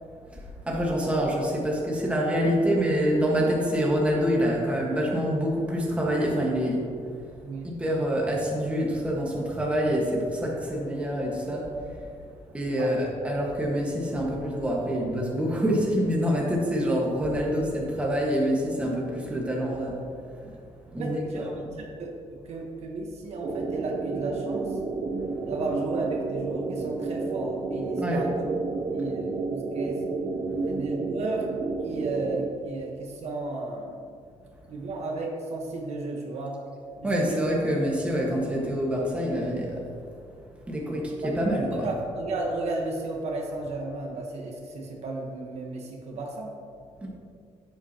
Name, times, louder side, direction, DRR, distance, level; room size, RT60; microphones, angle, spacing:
voice 1, 0.7-6.9 7.6-11.7 12.5-20.0 20.4-20.5 20.9-21.7 28.0-28.2 37.0-39.9 40.7-41.9 47.0-47.1, equal, 10° right, -3 dB, 1.5 m, -26 dB
voice 2, 21.0-22.1 22.4-24.8 25.4-28.3 28.9-30.0 30.7-31.5 31.8-34.0 34.7-36.6 37.0-37.4 40.8-41.1 41.7-46.6, right 2 dB, 60° right, 0 dB, 1.2 m, -34 dB
sound 1, 23.4-32.5, right 3 dB, 40° right, 0.6 m, -31 dB
10.5 x 7.9 x 2.9 m, 2.4 s
cardioid pair, 150°, 12 cm